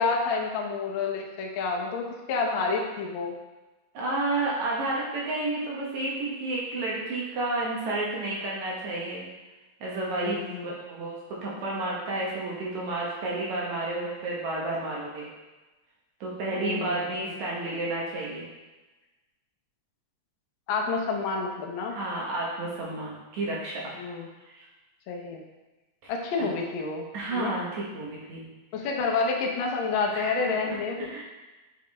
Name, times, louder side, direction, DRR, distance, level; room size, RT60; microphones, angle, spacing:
voice 1, 0.0-3.3 10.2-10.7 16.5-17.0 20.7-22.0 24.0-24.3 25.1-25.4 26.1-27.5 28.7-31.2, left 4 dB, 80° left, 0 dB, 1.1 m, -29 dB
voice 2, 3.9-9.3 9.8-15.3 16.2-18.4 21.9-24.0 24.5-24.6 26.0-26.1 27.1-28.5 30.1-31.2, right 2 dB, 70° right, -4 dB, 2.5 m, -31 dB
7.1 x 5.0 x 3.5 m, 1.1 s
omnidirectional pair, 3.5 m